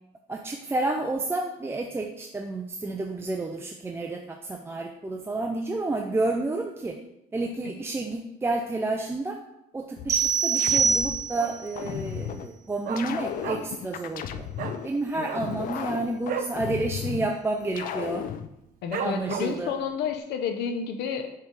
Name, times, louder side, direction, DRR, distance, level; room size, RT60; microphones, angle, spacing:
voice 1, 0.3-7.0 7.3-9.4 9.7-14.5 14.8-18.3 19.0-19.7, right 2 dB, 15° right, 2 dB, 0.5 m, -30 dB
sound 1, 10.0-11.3 11.8-12.5 13.0-14.9 15.4-17.3 17.8-18.5, left 9 dB, 55° left, 0.4 m, -34 dB
sound 2, 10.1-11.6, right 6 dB, 40° right, 1.0 m, -24 dB
Dog, 11.4-11.8 12.1-12.2 12.5-13.9 14.2-14.3 14.5-14.8 15.2-16.6 17.0-17.1 17.4-17.8 18.2-18.3 18.9-19.7 20.2-20.3, right 7 dB, 60° right, 0.6 m, -34 dB
voice 2, 18.8-21.3, left 7 dB, 80° left, 6 dB, 0.8 m, -30 dB
6.7 x 3.4 x 4.7 m, 0.83 s
cardioid pair, 110°, 17 cm